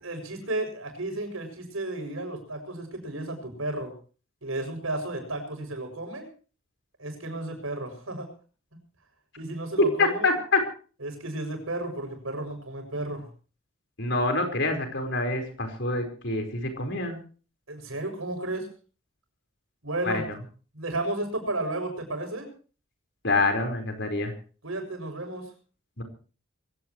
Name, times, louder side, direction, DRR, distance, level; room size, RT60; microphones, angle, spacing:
voice 1, 0.0-3.9 4.4-6.3 7.0-8.3 9.4-10.3 11.0-13.3 17.7-18.7 19.8-20.3 20.7-22.5 24.6-25.5, right 2 dB, 85° right, 5 dB, 7.1 m, -33 dB
voice 2, 10.0-10.6 14.0-17.2 20.1-20.2 23.2-24.3 26.0-26.1, left 3 dB, 55° left, 5 dB, 4.7 m, -26 dB
23.0 x 17.0 x 3.2 m, 0.39 s
head